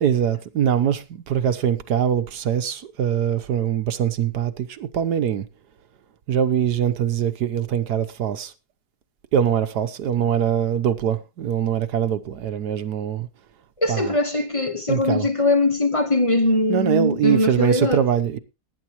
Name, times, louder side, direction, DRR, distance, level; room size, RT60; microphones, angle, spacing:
voice 1, 0.0-5.4 6.3-8.5 9.3-13.3 13.9-14.2 14.9-15.3 16.7-18.4, right 9 dB, 75° right, 1.5 m, -23 dB
voice 2, 13.8-18.0, left 2 dB, 25° left, 1.0 m, -21 dB
18.5 x 9.6 x 3.0 m
omnidirectional pair, 1.8 m